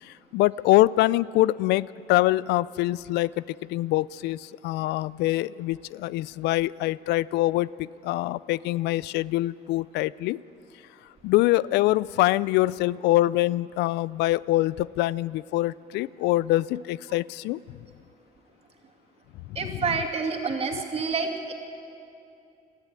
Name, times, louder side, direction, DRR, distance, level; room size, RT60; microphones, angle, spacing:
voice 1, 0.0-3.4 3.7-10.4 11.2-17.6 19.5-19.7, left 17 dB, 85° left, 21 dB, 0.4 m, -24 dB
voice 2, 19.5-21.5, right 5 dB, 35° right, 2 dB, 2.6 m, -28 dB
22.5 x 14.0 x 9.6 m, 2.6 s
cardioid pair, 110°, 17 cm